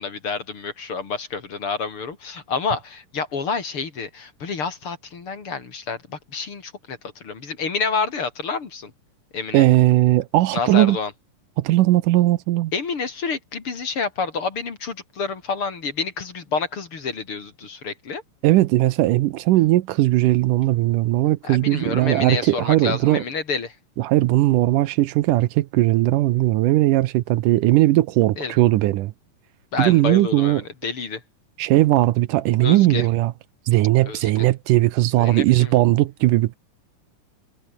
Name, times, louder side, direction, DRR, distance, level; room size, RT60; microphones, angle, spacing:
voice 1, 0.0-8.9 9.3-9.6 10.5-11.1 12.7-18.2 21.4-23.7 28.4-28.5 29.7-31.2 32.6-33.1 34.0-34.4 35.1-35.7, left 5 dB, 45° left, 3.4 m, -28 dB
voice 2, 9.5-11.0 11.6-12.7 18.4-23.2 24.0-29.1 29.8-30.6 31.6-33.3 33.7-36.6, right 16 dB, 80° right, 2.3 m, -18 dB
omnidirectional pair, 3.8 m